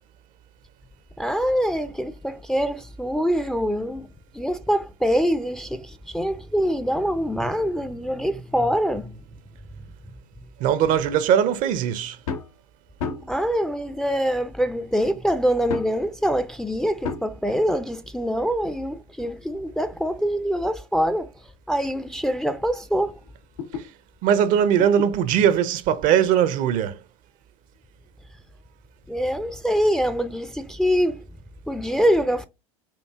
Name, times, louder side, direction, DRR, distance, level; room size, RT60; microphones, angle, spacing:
voice 1, 1.2-4.1 4.3-9.2 13.3-21.3 21.7-23.2 29.1-31.2 31.7-32.5, equal, 5° left, 0.4 m, -24 dB
voice 2, 10.6-12.2 24.2-27.0, right 9 dB, 50° right, 0.6 m, -20 dB
sound 1, 12.2-12.5 13.0-13.5 14.4-14.5 15.7-16.0 17.0-17.4 18.7-20.4 21.0-21.1 21.7-21.9 22.1-22.2 22.6-23.9 24.8-25.1 26.4-26.5, left 5 dB, 85° left, 0.8 m, -34 dB
4.5 x 2.6 x 3.4 m
hypercardioid pair, 85°, 17 cm